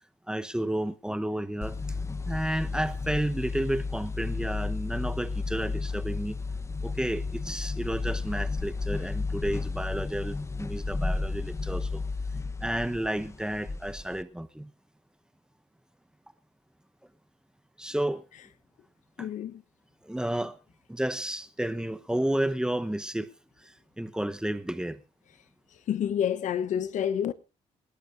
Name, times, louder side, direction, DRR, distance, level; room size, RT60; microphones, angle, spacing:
voice 1, 0.3-1.8 2.2-6.4 6.8-12.0 12.6-14.7 17.8-18.2 19.2-19.3 20.0-20.6 20.9-23.3 23.6-25.0, right 1 dB, 5° right, 0.9 m, -31 dB
sound 1, 1.6-14.2, left 3 dB, 20° left, 0.9 m, -33 dB
voice 2, 19.2-19.6 25.9-27.3, left 9 dB, 75° left, 0.9 m, -28 dB
27.5 x 11.5 x 2.6 m
cardioid pair, 90°, 13 cm